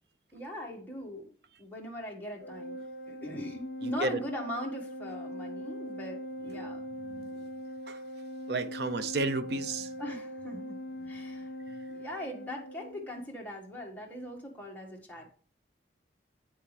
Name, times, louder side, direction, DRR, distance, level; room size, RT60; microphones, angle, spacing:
voice 1, 0.3-1.3 1.6-6.8 10.0-11.6 11.8-15.3, left 1 dB, 10° left, 1.5 m, -40 dB
Organ, 2.4-13.2, equal, 65° left, 0.4 m, -41 dB
voice 2, 3.8-4.2 6.5-6.6 7.1-7.3 7.9-8.0 8.5-9.9, right 3 dB, 70° right, 0.6 m, -32 dB
8.3 x 5.8 x 3.3 m
head